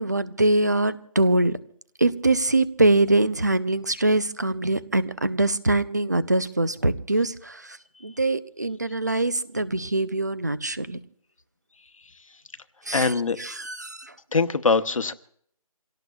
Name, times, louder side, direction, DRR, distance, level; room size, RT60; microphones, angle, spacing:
voice 1, 0.0-1.6 2.0-7.8 8.0-11.0 12.9-13.1 13.4-14.1, right 2 dB, 30° right, 14 dB, 0.5 m, -23 dB
voice 2, 12.9-13.6 14.3-15.1, left 4 dB, 60° left, 10 dB, 1.1 m, -23 dB
28.0 x 17.5 x 2.4 m, 0.66 s
figure-of-eight pair, 175°, 19 cm